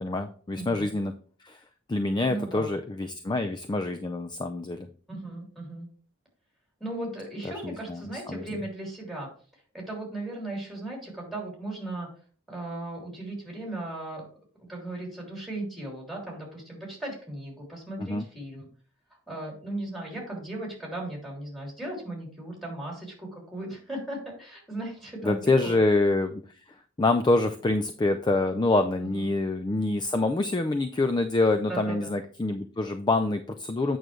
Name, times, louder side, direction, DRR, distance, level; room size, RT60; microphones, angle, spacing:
voice 1, 0.0-1.1 1.4-1.6 1.9-4.9 7.4-8.4 18.0-18.2 25.2-26.4 27.0-34.0, left 2 dB, 20° left, 8 dB, 0.4 m, -26 dB
voice 2, 0.5-0.9 2.3-2.7 5.1-5.9 6.8-9.3 9.7-12.1 12.5-14.2 14.7-18.7 19.3-25.8 29.0-29.1 31.7-32.1, right 1 dB, ahead, -2 dB, 3.2 m, -37 dB
8.8 x 6.2 x 3.1 m, 0.42 s
head